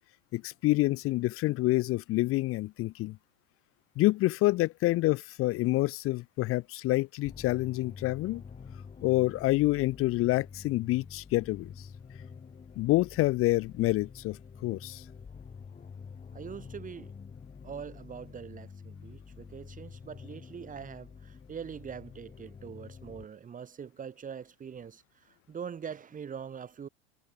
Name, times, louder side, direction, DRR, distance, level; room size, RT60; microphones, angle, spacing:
voice 1, 0.3-3.2 4.0-8.4 9.0-11.9 12.8-15.0, left 18 dB, 40° left, 0.9 m, -27 dB
sound 1, 7.2-23.3, left 6 dB, 20° left, 5.6 m, -48 dB
voice 2, 16.3-17.1 17.6-26.9, right 7 dB, 25° right, 2.3 m, -43 dB
hypercardioid pair, 105°, 33 cm